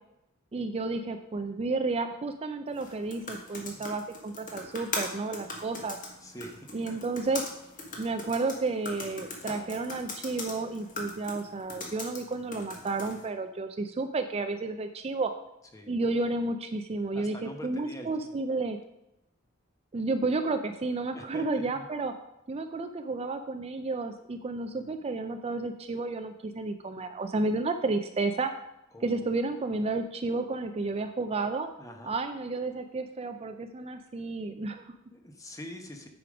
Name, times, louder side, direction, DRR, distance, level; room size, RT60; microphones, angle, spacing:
voice 1, 0.5-6.0 6.7-7.4 8.0-15.3 15.9-18.8 19.9-22.1 22.5-28.5 29.0-31.7 32.0-34.9, right 3 dB, 30° right, 7 dB, 0.4 m, -31 dB
sound 1, 2.7-13.3, left 2 dB, 40° left, 1.6 m, -40 dB
voice 2, 3.6-3.9 6.2-6.7 15.7-15.9 17.1-18.4 21.1-21.9 24.7-25.1 28.9-29.4 31.8-32.1 35.1-36.1, equal, 15° left, 4 dB, 1.0 m, -45 dB
9.1 x 5.1 x 5.0 m, 0.88 s
head